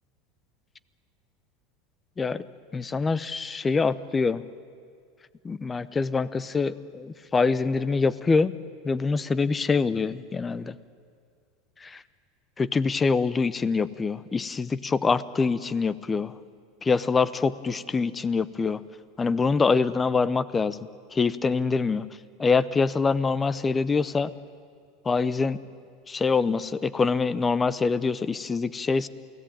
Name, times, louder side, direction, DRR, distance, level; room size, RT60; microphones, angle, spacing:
voice 1, 2.7-4.4 5.4-8.5 8.8-10.7 11.8-12.0 12.6-16.3 16.8-18.8 19.2-20.8 21.1-22.1 22.4-24.3 25.1-25.6 26.1-29.1, left 4 dB, 15° left, 17 dB, 0.7 m, -25 dB
28.5 x 17.5 x 9.0 m, 2.2 s
supercardioid pair, 130°, 0 cm